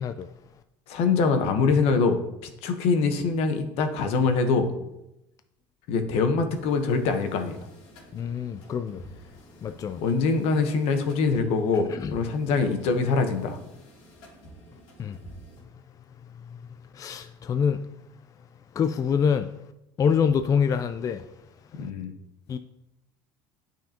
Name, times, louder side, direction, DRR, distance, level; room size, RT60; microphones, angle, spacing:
voice 1, 0.9-4.7 5.9-7.7 10.0-13.6 21.7-22.1, left 4 dB, 65° left, 1.0 m, -24 dB
sound 1, 6.5-15.6, right 1 dB, 80° left, 2.8 m, -50 dB
voice 2, 8.1-9.0 9.6-10.0 15.0-15.2 17.0-17.8 18.8-19.5 20.0-21.2 22.5-22.6, left 7 dB, 30° left, 0.4 m, -25 dB
8.7 x 5.7 x 2.9 m
supercardioid pair, 100°, 11 cm